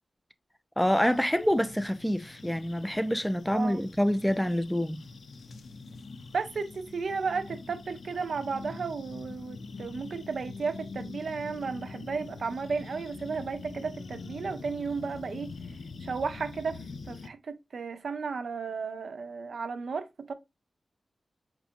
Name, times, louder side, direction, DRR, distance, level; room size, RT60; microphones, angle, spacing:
sound 1, 0.8-17.3, left 4 dB, 90° left, 0.4 m, -44 dB
voice 1, 0.8-5.0, equal, 5° left, 0.4 m, -27 dB
voice 2, 6.3-15.5 16.0-20.3, right 5 dB, 90° right, 0.5 m, -34 dB
5.3 x 2.5 x 2.6 m
wide cardioid pair, 105°, 0 cm